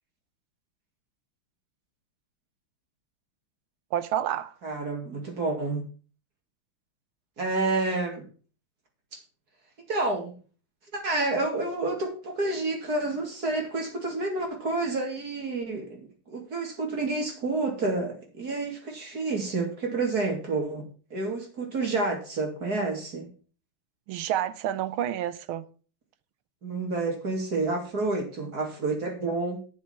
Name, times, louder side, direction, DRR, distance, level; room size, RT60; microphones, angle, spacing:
voice 1, 3.9-4.5 24.1-25.6, right 11 dB, 80° right, 1.7 m, -29 dB
voice 2, 4.6-5.9 7.4-8.3 9.9-10.3 10.9-20.8 21.1-23.3 26.6-29.6, right 3 dB, 45° right, 3.0 m, -29 dB
9.8 x 7.1 x 5.8 m
omnidirectional pair, 2.3 m